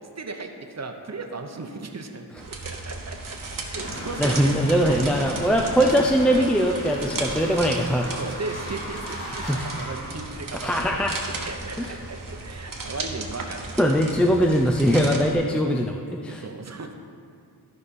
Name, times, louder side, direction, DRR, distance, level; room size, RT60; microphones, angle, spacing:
voice 1, 0.2-4.5 4.8-5.4 5.6-5.8 8.2-10.9 11.4-13.8 16.3-16.9, right 3 dB, 45° right, 5 dB, 0.8 m, -36 dB
sound 1, 2.4-15.3, right 3 dB, 60° right, 1.1 m, -36 dB
sound 2, 3.8-10.7, left 1 dB, 75° left, 2.1 m, -36 dB
voice 2, 4.2-8.1 9.5-9.6 10.5-11.1 11.8-11.9 13.8-16.4, equal, 5° left, 2 dB, 0.4 m, -21 dB
13.5 x 5.2 x 4.2 m, 2.3 s
wide cardioid pair, 90°, 39 cm